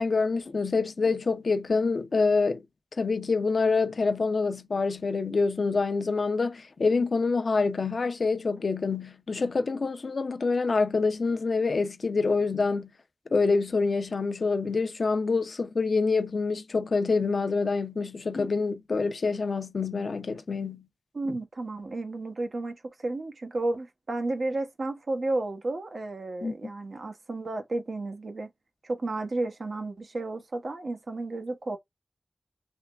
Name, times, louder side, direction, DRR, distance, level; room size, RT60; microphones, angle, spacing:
voice 1, 0.0-2.6 3.0-12.9 13.3-20.8 26.4-26.6, left 4 dB, 75° left, 0.6 m, -26 dB
voice 2, 21.1-28.5 28.8-31.8, right 2 dB, 75° right, 0.9 m, -32 dB
3.5 x 3.2 x 2.4 m
wide cardioid pair, 55°, 0 cm